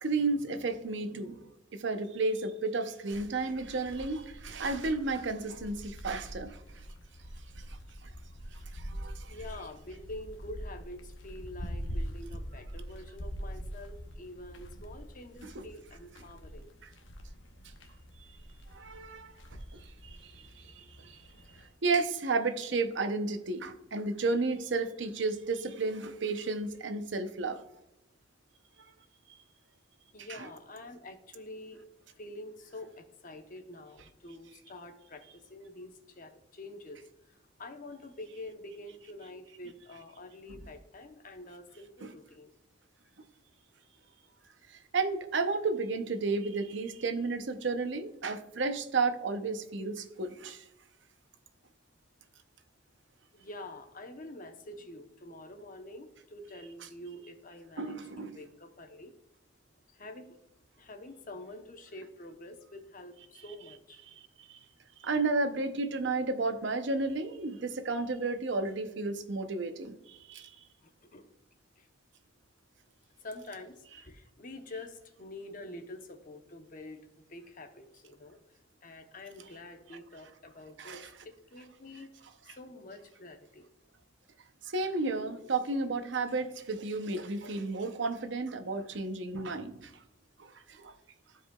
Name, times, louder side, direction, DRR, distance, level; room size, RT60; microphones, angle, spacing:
voice 1, 0.0-1.4 1.7-6.6 8.7-9.3 15.4-15.7 18.7-19.3 19.8-21.2 21.8-27.6 30.3-30.5 42.0-42.1 44.7-50.6 57.8-58.4 64.1-64.2 64.5-64.6 65.0-70.5 80.8-81.1 84.7-89.9 90.4-90.9, right 3 dB, 65° right, 0.7 m, -32 dB
sound 1, 3.1-21.7, equal, 75° left, 1.0 m, -44 dB
voice 2, 9.3-16.7 30.1-31.8 32.2-37.0 37.6-42.5 53.3-59.1 59.9-60.3 60.8-64.0 65.1-65.2 70.8-71.3 71.8-71.9 73.2-77.0 77.3-78.4 78.8-82.1 82.4-83.7, left 1 dB, 45° left, 0.9 m, -47 dB
14.0 x 4.9 x 2.3 m
head